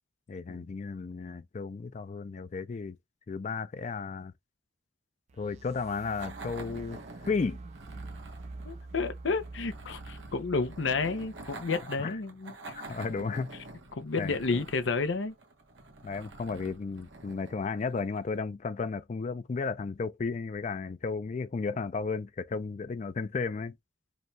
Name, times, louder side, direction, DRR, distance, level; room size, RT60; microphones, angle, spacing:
voice 1, 0.3-3.0 3.3-4.3 5.4-7.6 12.0-12.2 12.7-13.6 14.2-14.6 16.0-23.7, left 4 dB, 40° left, 0.4 m, -34 dB
sound 1, 5.3-11.5, right 2 dB, 35° right, 0.3 m, -46 dB
sound 2, 6.2-18.4, right 2 dB, 90° right, 1.1 m, -47 dB
voice 2, 8.6-12.7 13.9-15.3, left 4 dB, 90° left, 0.7 m, -31 dB
5.2 x 2.3 x 3.1 m
head